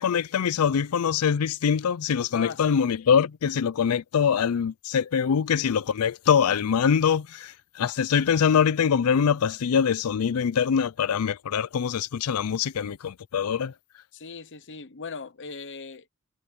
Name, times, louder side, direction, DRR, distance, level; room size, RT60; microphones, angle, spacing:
voice 1, 0.0-13.7, left 7 dB, 85° left, 0.4 m, -24 dB
voice 2, 2.3-2.9 14.1-16.1, left 5 dB, 60° left, 1.0 m, -39 dB
head